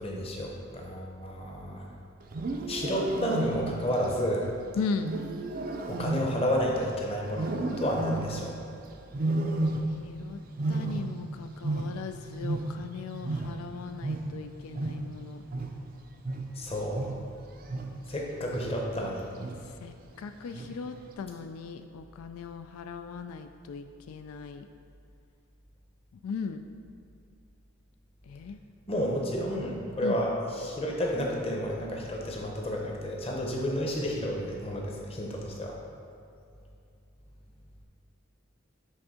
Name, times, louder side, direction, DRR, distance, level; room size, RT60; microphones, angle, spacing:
voice 1, 0.0-1.8 2.7-4.4 5.9-8.6 16.6-17.1 18.1-19.2 28.9-35.8, equal, 25° left, -1 dB, 0.8 m, -31 dB
Wild animals, 2.2-3.9 5.0-6.9 7.3-8.5 9.1-10.2 10.5-13.0 13.2-18.1 18.5-19.0 19.4-19.8 20.5-21.0, right 2 dB, 40° right, 0.4 m, -33 dB
voice 2, 4.8-5.1 10.0-10.4 10.7-15.4 19.8-24.7 26.2-26.7 28.3-28.6 30.0-30.2, left 5 dB, 90° left, 8 dB, 0.3 m, -38 dB
7.6 x 3.5 x 4.9 m, 2.5 s
head